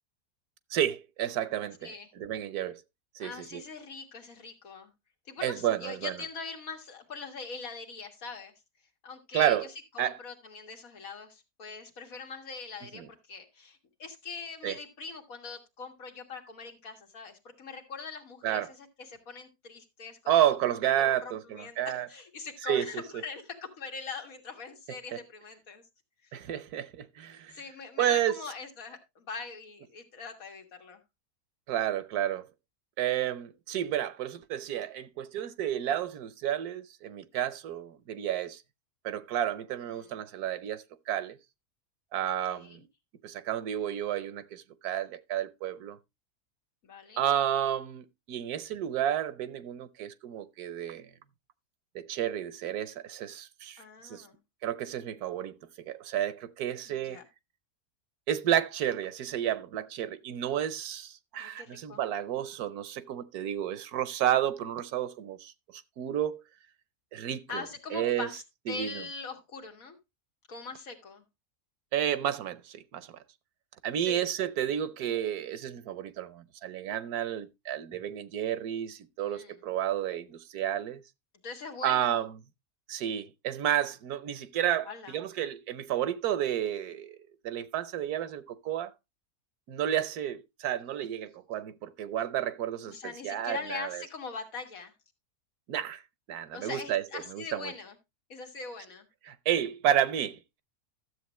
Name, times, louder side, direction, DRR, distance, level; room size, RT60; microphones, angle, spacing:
voice 1, 0.7-2.8 3.1-3.6 5.4-6.1 9.3-9.7 10.0-10.2 12.9-13.1 14.6-14.8 18.4-18.7 20.3-22.1 22.7-23.0 25.1-25.2 26.3-27.6 28.0-28.4 31.7-32.5 33.0-38.6 39.0-41.4 42.1-42.8 43.2-46.0 47.2-51.1 51.9-54.2 54.6-57.2 58.3-66.4 67.1-67.6 67.9-68.3 68.7-68.9 71.9-73.1 73.8-81.0 81.8-82.3 82.9-87.2 87.4-88.9 89.7-94.0 95.7-96.0 96.3-97.0 97.3-97.7 99.2-100.6, right 11 dB, 90° right, 1.3 m, -31 dB
voice 2, 3.2-4.9 5.3-8.5 9.0-9.6 9.9-20.6 21.0-25.8 26.2-26.3 27.5-31.0 39.9-40.2 42.2-42.8 46.8-47.3 53.8-54.4 56.9-57.3 61.4-62.0 67.5-70.0 70.5-71.2 74.0-74.3 77.9-78.0 79.2-79.6 81.4-82.3 84.9-85.2 92.9-94.9 96.5-98.0 98.3-99.1, left 4 dB, 65° left, 2.0 m, -42 dB
13.0 x 7.6 x 3.0 m
omnidirectional pair, 1.6 m